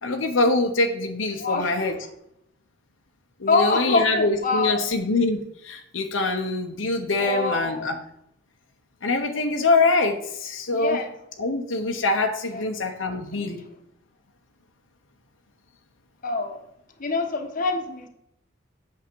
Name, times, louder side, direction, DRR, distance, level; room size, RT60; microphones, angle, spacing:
voice 1, 0.0-2.0 3.4-8.0 9.0-11.0 11.4-13.6, left 3 dB, 85° left, 4 dB, 1.0 m, -24 dB
voice 2, 1.4-1.9 3.5-4.8 7.2-7.9 10.7-11.1 12.5-12.6 13.3-13.5 16.2-16.6 17.0-18.1, left 3 dB, 45° left, 3 dB, 1.3 m, -25 dB
8.5 x 6.6 x 4.6 m, 0.76 s
head